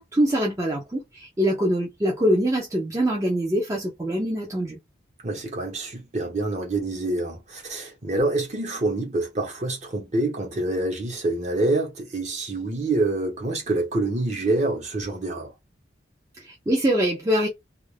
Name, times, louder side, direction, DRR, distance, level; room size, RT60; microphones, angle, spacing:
voice 1, 0.0-4.8 16.4-17.5, equal, 15° right, 0.5 m, -24 dB
voice 2, 5.2-15.5, right 2 dB, 40° right, 1.0 m, -26 dB
2.4 x 2.2 x 3.3 m
head